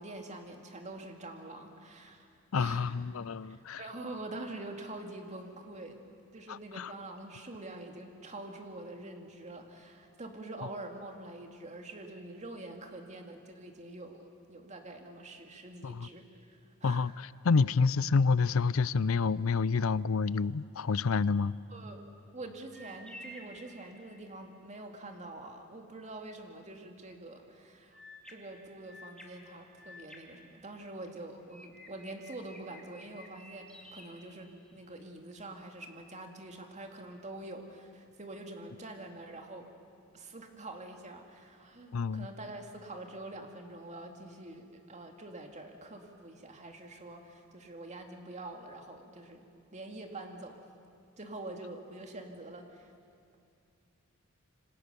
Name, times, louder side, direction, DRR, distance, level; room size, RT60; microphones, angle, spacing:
voice 1, 0.0-2.9 3.4-6.0 6.3-17.2 17.6-17.7 21.7-22.0 22.3-28.0 28.3-39.7 40.1-50.6 51.2-52.9, right 2 dB, 35° right, 4 dB, 2.3 m, -45 dB
voice 2, 2.5-3.8 6.5-6.9 15.8-16.1 16.8-21.5 41.9-42.3, left 4 dB, 90° left, 19 dB, 0.5 m, -28 dB
sound 1, 22.7-24.4 27.9-31.1 31.5-34.9, equal, 5° left, 2.6 m, -53 dB
27.0 x 25.0 x 6.8 m, 2.4 s
head